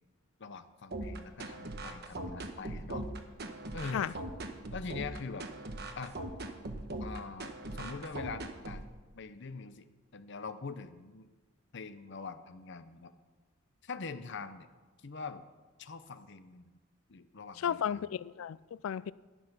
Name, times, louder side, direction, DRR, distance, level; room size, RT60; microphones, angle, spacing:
voice 1, 0.4-3.1 3.7-4.1 4.7-5.5 6.0-6.1 7.0-8.9 9.1-11.3 11.7-13.1 13.8-14.7 15.0-15.4 15.8-16.8 17.1-18.1, left 4 dB, 60° left, 0.7 m, -43 dB
sound 1, 0.9-8.9, right 2 dB, 50° right, 1.1 m, -40 dB
voice 2, 17.6-19.1, left 8 dB, 75° left, 0.3 m, -34 dB
11.0 x 10.5 x 6.0 m
head